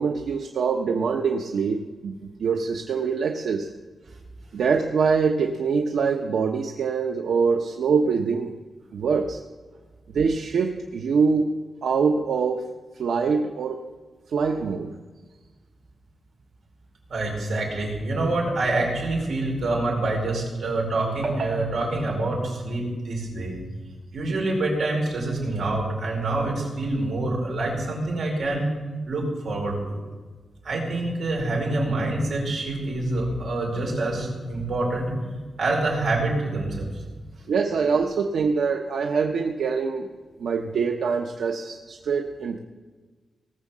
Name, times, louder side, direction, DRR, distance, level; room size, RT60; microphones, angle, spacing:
voice 1, 0.0-3.7 4.5-8.5 8.9-9.4 10.1-11.5 11.8-13.9 14.3-14.9 37.5-40.1 40.4-42.6, right 5 dB, 85° right, 4 dB, 0.8 m, -24 dB
voice 2, 17.1-23.5 24.1-28.7 29.1-30.0 30.6-35.2 35.6-37.3, right 2 dB, 60° right, -1 dB, 4.8 m, -26 dB
18.5 x 6.5 x 7.3 m, 1.3 s
wide cardioid pair, 150°, 0 cm